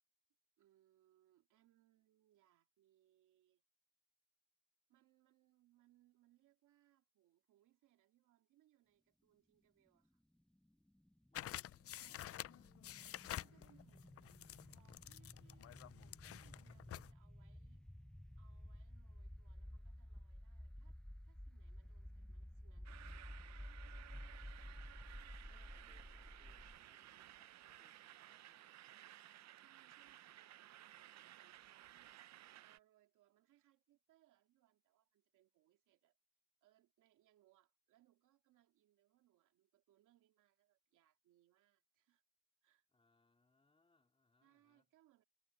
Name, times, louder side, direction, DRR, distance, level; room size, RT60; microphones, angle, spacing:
voice 1, 0.6-3.6 4.9-10.2 13.4-15.9 16.2-17.9 18.4-21.0 21.2-24.2 29.6-32.2 32.5-36.2 36.6-42.2 42.6-42.9 44.4-45.2, right 14 dB, 85° right, 2.5 m, -75 dB
sound 1, 10.9-26.8, left 1 dB, ahead, 0.8 m, -54 dB
sound 2, 11.3-17.1, left 13 dB, 50° left, 0.5 m, -50 dB
voice 2, 11.3-13.6 25.5-28.9 42.9-44.9, left 3 dB, 20° left, 4.0 m, -78 dB
sound 3, 22.8-32.8, right 13 dB, 65° right, 0.7 m, -58 dB
cardioid pair, 90°, 30 cm